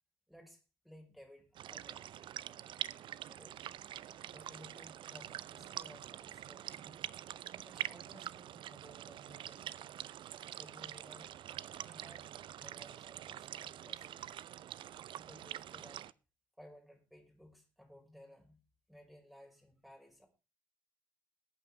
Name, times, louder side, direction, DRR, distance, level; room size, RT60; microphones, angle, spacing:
voice 1, 0.3-2.4 3.3-3.7 4.3-7.0 7.6-9.9 10.5-11.3 11.8-12.3 12.6-14.3 14.7-14.8 15.1-16.1 16.6-18.6 18.9-20.3, equal, ahead, 2 dB, 5.2 m, -58 dB
sound 1, 1.5-16.1, right 11 dB, 60° right, 0.5 m, -45 dB
21.5 x 8.9 x 3.3 m, 0.30 s
hypercardioid pair, 45°, 10 cm